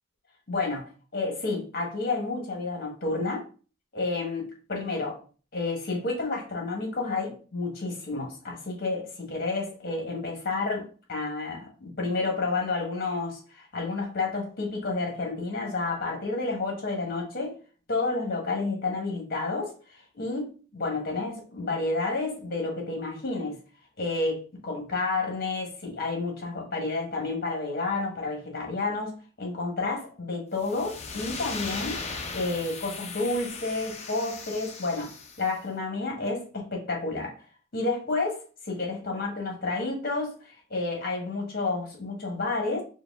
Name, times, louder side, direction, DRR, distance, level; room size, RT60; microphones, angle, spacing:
voice 1, 0.5-3.4 3.9-5.2 5.5-17.6 17.9-19.7 20.1-23.6 24.0-32.0 32.3-35.1 35.4-37.3 37.7-42.8, left 3 dB, 55° left, 1 dB, 1.3 m, -30 dB
sound 1, 30.6-35.5, left 4 dB, 35° left, 0.6 m, -38 dB
4.7 x 2.3 x 3.5 m, 0.37 s
head